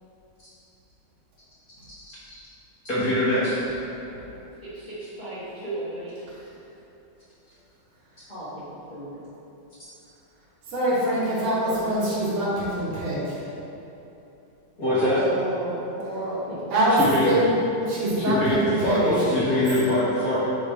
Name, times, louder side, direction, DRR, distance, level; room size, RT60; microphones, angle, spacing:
voice 1, 2.8-3.8 14.8-15.2 16.9-17.4 18.1-20.4, left 1 dB, 60° left, -11 dB, 0.9 m, -23 dB
voice 2, 4.2-6.1 8.3-9.1 11.5-12.4 15.0-17.0, right 1 dB, 80° left, -12 dB, 0.4 m, -35 dB
voice 3, 10.7-13.4 16.7-17.0 17.2-17.5 17.8-18.4 18.6-19.0 19.4-19.9, right 1 dB, 85° right, -9 dB, 2.8 m, -24 dB
7.2 x 3.3 x 4.7 m, 3.0 s
omnidirectional pair, 3.5 m